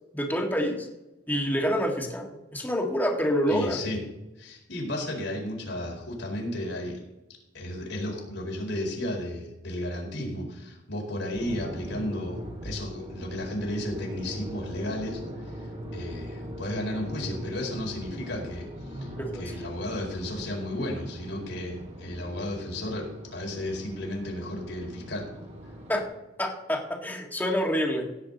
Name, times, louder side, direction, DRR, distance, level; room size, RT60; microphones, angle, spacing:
voice 1, 0.1-0.9 1.3-3.9 19.2-19.4 25.9-26.0 26.4-28.1, equal, 10° left, 1 dB, 1.8 m, -27 dB
voice 2, 3.5-4.0 4.4-7.0 7.5-15.6 15.9-25.3, left 1 dB, 80° left, -1 dB, 4.5 m, -33 dB
sound 1, 11.3-26.0, equal, 35° right, 2.2 m, -40 dB
17.0 x 8.4 x 4.1 m, 0.99 s
head